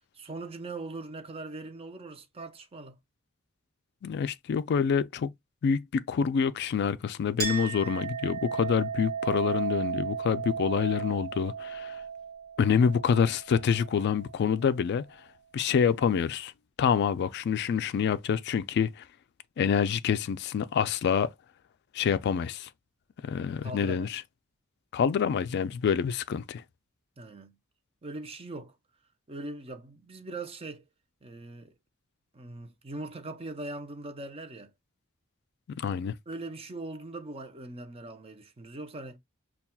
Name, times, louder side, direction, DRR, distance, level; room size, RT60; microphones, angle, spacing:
voice 1, 0.1-3.0 23.6-24.2 27.2-27.6 28.0-28.7 29.3-30.8 31.2-31.7 32.3-34.7 36.3-39.2, right 2 dB, 30° right, 0.6 m, -41 dB
voice 2, 4.0-5.3 5.6-12.0 12.6-15.0 15.5-16.5 16.8-18.9 19.6-21.3 21.9-22.7 23.2-24.2 24.9-26.6 35.7-36.1, left 7 dB, 55° left, 0.3 m, -27 dB
Chink clink, 7.4-14.4, right 6 dB, 50° right, 1.1 m, -35 dB
5.6 x 2.3 x 2.2 m
head